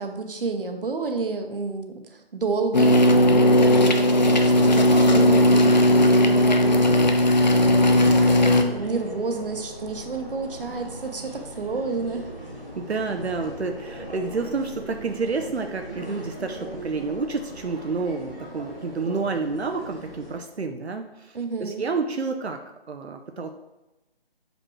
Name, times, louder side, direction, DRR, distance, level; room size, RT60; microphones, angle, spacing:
voice 1, 0.0-12.3 21.3-21.8, right 4 dB, 60° right, 5 dB, 0.9 m, -30 dB
sound 1, 2.7-8.6, left 1 dB, 45° left, 0.5 m, -17 dB
sound 2, 4.6-20.4, right 1 dB, 5° right, 0.7 m, -39 dB
voice 2, 12.7-22.6 22.9-23.5, right 4 dB, 85° right, 5 dB, 0.6 m, -29 dB
6.1 x 5.2 x 3.1 m, 1.0 s
figure-of-eight pair, 160°, 31 cm